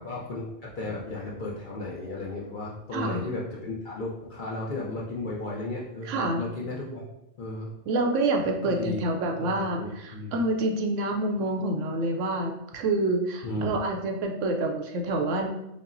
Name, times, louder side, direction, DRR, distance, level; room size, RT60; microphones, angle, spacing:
voice 1, 0.0-7.0 7.4-7.7 8.7-9.0 9.4-10.3 13.4-13.8, left 2 dB, 55° left, -4 dB, 0.6 m, -34 dB
voice 2, 2.9-3.3 6.1-6.4 7.9-15.5, right 2 dB, 75° right, 2 dB, 0.9 m, -27 dB
5.3 x 2.0 x 2.6 m, 0.86 s
omnidirectional pair, 1.3 m